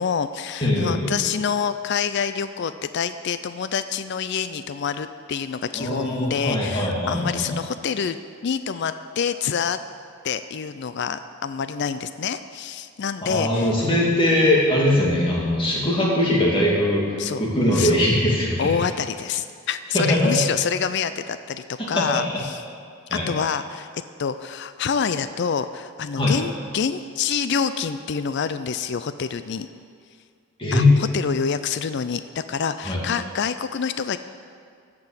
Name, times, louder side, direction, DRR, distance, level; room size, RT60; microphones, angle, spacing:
voice 1, 0.0-9.8 10.2-13.7 17.2-17.4 17.7-18.0 18.6-22.6 23.1-23.9 24.2-29.7 30.7-34.2, left 6 dB, 55° left, 12 dB, 0.4 m, -27 dB
voice 2, 0.6-1.2 5.7-7.5 13.2-17.0 17.4-18.6 19.9-20.4 21.8-22.4 23.1-23.3 26.2-26.3 30.6-31.0 32.8-33.0, left 1 dB, 25° left, -4 dB, 2.4 m, -21 dB
14.0 x 6.0 x 7.3 m, 2.2 s
head